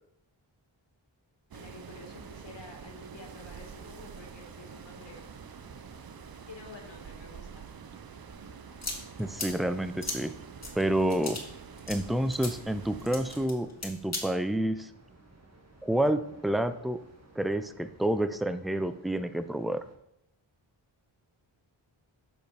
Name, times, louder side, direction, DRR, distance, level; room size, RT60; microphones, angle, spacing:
voice 1, 1.5-5.3 5.8-5.9 6.5-7.7, left 3 dB, 65° left, 1 dB, 2.0 m, -50 dB
sound 1, 1.5-13.5, right 7 dB, 50° right, 0.6 m, -47 dB
sound 2, 1.9-20.0, right 2 dB, 35° right, 1.5 m, -56 dB
sound 3, 8.3-14.2, left 2 dB, 30° left, 2.0 m, -39 dB
voice 2, 9.2-10.3 10.8-11.4 11.9-14.9 15.8-17.0 17.4-19.8, right 1 dB, ahead, 11 dB, 0.4 m, -29 dB
6.9 x 5.0 x 4.7 m, 0.81 s
wide cardioid pair, 60°, 48 cm